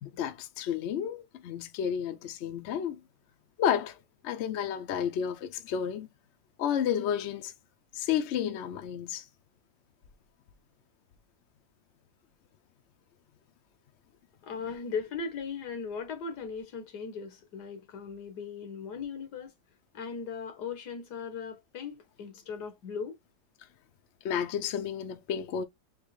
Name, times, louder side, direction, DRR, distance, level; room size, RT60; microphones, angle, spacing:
voice 1, 0.2-3.0 3.6-4.0 4.2-6.1 6.6-7.5 7.9-9.2 24.2-25.6, left 9 dB, 60° left, 0.7 m, -31 dB
voice 2, 14.4-19.5 19.9-23.1, left 5 dB, 80° left, 1.5 m, -38 dB
3.9 x 3.0 x 3.1 m
omnidirectional pair, 1.7 m